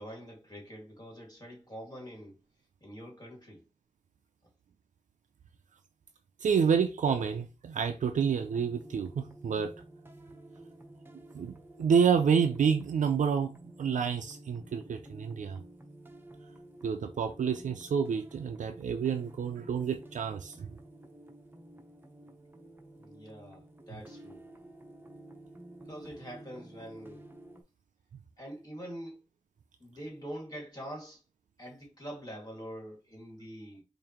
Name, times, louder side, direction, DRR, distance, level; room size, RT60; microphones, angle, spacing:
voice 1, 0.0-2.4 2.8-3.6 23.0-24.4 25.9-27.2 28.4-29.2 29.8-31.2 31.6-33.8, equal, 30° left, 2.1 m, -44 dB
voice 2, 6.4-9.7 11.3-15.6 16.8-20.7, right 6 dB, 85° right, 0.4 m, -29 dB
sound 1, 8.3-27.6, right 1 dB, 15° right, 0.8 m, -52 dB
4.8 x 2.6 x 2.9 m
cardioid pair, 40°, 13 cm